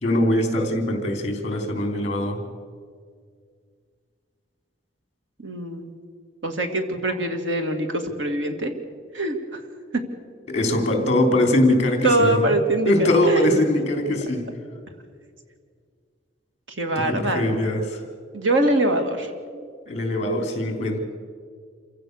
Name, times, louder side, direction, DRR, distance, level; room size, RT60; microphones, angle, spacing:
voice 1, 0.0-2.4 10.5-12.5 12.8-14.5 17.1-18.0 19.9-21.0, left 1 dB, 35° left, 5 dB, 3.3 m, -22 dB
voice 2, 5.4-5.9 6.4-8.7 9.1-9.6 12.0-13.8 16.8-17.6 18.3-19.3, right 2 dB, 80° right, 5 dB, 2.4 m, -23 dB
27.0 x 16.0 x 6.7 m, 2.1 s
head